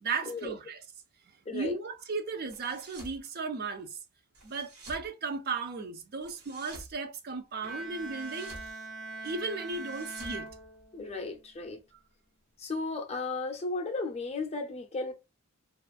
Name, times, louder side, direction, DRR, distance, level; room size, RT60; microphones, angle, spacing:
voice 1, 0.0-0.8 1.5-4.0 4.4-8.5 9.2-10.5, right 4 dB, 45° right, 0.4 m, -35 dB
voice 2, 1.5-1.8 10.9-11.8 12.6-15.1, left 3 dB, 30° left, 0.5 m, -35 dB
sound 1, 2.5-3.2 4.3-5.1 6.2-6.9 8.0-8.7 9.7-11.2, right 2 dB, 85° right, 1.1 m, -50 dB
Bowed string instrument, 7.6-11.4, right 2 dB, 70° right, 0.7 m, -42 dB
2.4 x 2.4 x 2.4 m
head